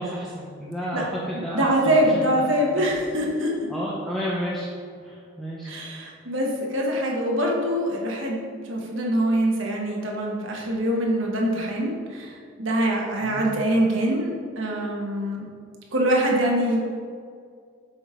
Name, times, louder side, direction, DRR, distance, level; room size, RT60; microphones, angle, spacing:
voice 1, 0.0-2.0 2.8-2.9 3.7-4.7 5.0-5.7 13.2-13.5, equal, ahead, -7 dB, 0.6 m, -31 dB
voice 2, 1.5-3.6 5.6-15.4 15.9-16.8, right 1 dB, 65° right, -2 dB, 1.2 m, -24 dB
7.0 x 3.6 x 5.0 m, 2.2 s
head